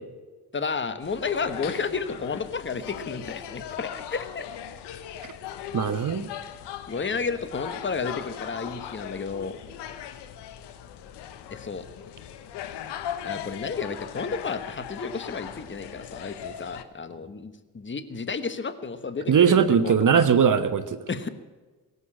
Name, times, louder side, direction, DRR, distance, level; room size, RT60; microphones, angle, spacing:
voice 1, 0.5-4.5 6.9-9.6 11.5-11.8 13.2-20.3 21.1-21.3, left 5 dB, 30° left, 12 dB, 1.3 m, -32 dB
sound 1, 1.0-16.8, left 10 dB, 90° left, 1.1 m, -39 dB
voice 2, 5.7-6.3 19.3-21.0, right 7 dB, 50° right, 10 dB, 1.0 m, -20 dB
17.0 x 8.2 x 8.6 m, 1.3 s
supercardioid pair, 60°, 40 cm